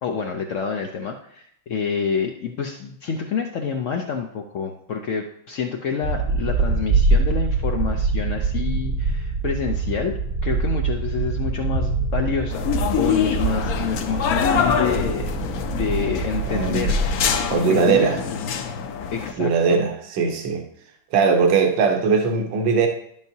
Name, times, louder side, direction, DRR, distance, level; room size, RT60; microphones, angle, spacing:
voice 1, 0.0-15.4 15.7-17.3 17.5-18.1 19.1-19.8, left 6 dB, 85° left, 2 dB, 0.6 m, -28 dB
sound 1, 6.0-17.5, right 3 dB, 45° right, 0.8 m, -24 dB
sound 2, 12.5-19.3, left 7 dB, 65° left, 1.0 m, -25 dB
voice 2, 16.5-16.9 17.5-18.2 19.4-20.6 21.1-22.9, right 5 dB, 70° right, 4 dB, 1.6 m, -20 dB
10.5 x 7.4 x 2.7 m, 0.70 s
omnidirectional pair, 2.1 m